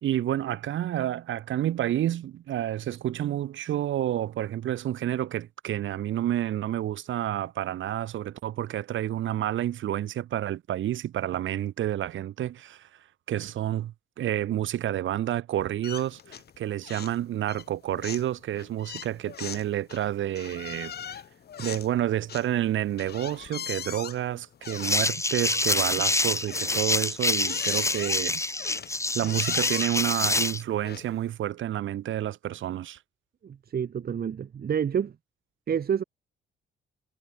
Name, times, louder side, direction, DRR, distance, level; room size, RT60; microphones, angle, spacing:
voice 1, 0.0-12.9 13.3-21.2 21.6-28.4 29.1-33.0, right 12 dB, 75° right, 4.4 m, -29 dB
sound 1, 15.8-16.6 16.8-17.2 17.5-31.3, left 9 dB, 55° left, 1.7 m, -40 dB
sound 2, 24.7-30.6, left 2 dB, 15° left, 2.7 m, -26 dB
voice 2, 33.4-35.2 35.7-36.0, right 8 dB, 50° right, 2.1 m, -28 dB
cardioid pair, 90°, 20 cm